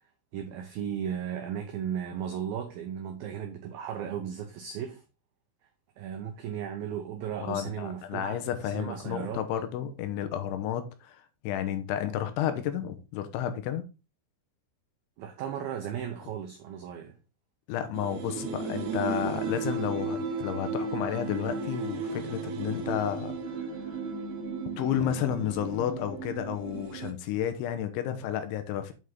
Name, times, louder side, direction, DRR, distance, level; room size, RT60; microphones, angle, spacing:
voice 1, 0.3-5.0 6.0-9.5 15.2-17.2, right 8 dB, 85° right, 2.0 m, -36 dB
voice 2, 7.4-13.8 17.7-23.7 24.8-28.9, left 10 dB, 80° left, 3.3 m, -32 dB
sound 1, 17.9-27.1, right 5 dB, 70° right, 2.5 m, -35 dB
sound 2, 18.6-26.8, left 2 dB, 50° left, 2.6 m, -44 dB
8.0 x 5.4 x 3.8 m
omnidirectional pair, 5.4 m